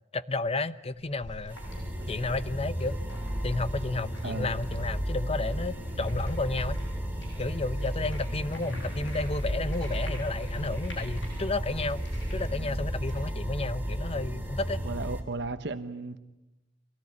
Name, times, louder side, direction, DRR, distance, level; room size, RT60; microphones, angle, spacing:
voice 1, 0.1-1.6 2.1-3.0 3.4-6.8 7.4-12.0 12.3-14.8, left 3 dB, 35° left, 13 dB, 0.8 m, -32 dB
sound 1, 0.9-13.3, equal, 75° left, 7.8 m, -47 dB
sound 2, 1.5-15.2, equal, 10° right, 3.3 m, -33 dB
voice 2, 4.2-4.5 14.8-16.2, right 3 dB, 65° right, 10 dB, 1.1 m, -34 dB
24.5 x 18.5 x 9.8 m, 1.0 s
head